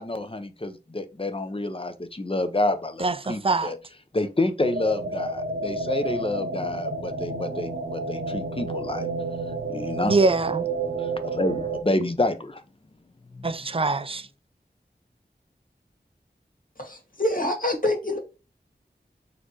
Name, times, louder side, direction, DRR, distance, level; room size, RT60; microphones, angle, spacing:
voice 1, 0.0-3.8 4.1-9.1 9.7-10.1 11.0-12.6 13.3-13.5, left 2 dB, 30° left, 0.7 m, -28 dB
voice 2, 3.0-3.7 10.1-10.7 13.4-14.3, right 3 dB, 30° right, 0.4 m, -23 dB
sound 1, 4.6-11.8, right 3 dB, 70° right, 0.9 m, -30 dB
voice 3, 16.8-18.2, left 1 dB, 50° left, 1.9 m, -26 dB
4.2 x 2.7 x 4.5 m
wide cardioid pair, 45°, 18 cm